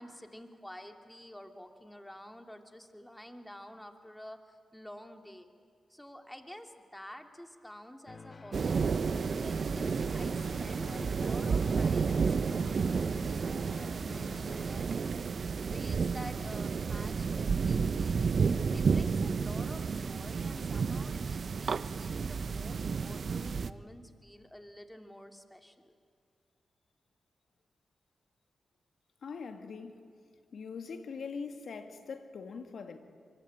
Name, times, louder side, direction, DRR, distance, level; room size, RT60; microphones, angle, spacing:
voice 1, 0.0-5.5 5.9-9.0 9.4-18.4 18.7-25.9, equal, 10° left, 5 dB, 3.0 m, -49 dB
sound 1, 8.1-15.0, left 4 dB, 50° left, 0.9 m, -49 dB
sound 2, 8.5-23.7, right 5 dB, 65° right, 0.8 m, -31 dB
voice 2, 29.2-30.1 30.5-33.0, left 5 dB, 70° left, 7 dB, 2.0 m, -42 dB
24.5 x 23.5 x 8.9 m, 2.2 s
supercardioid pair, 45°, 0 cm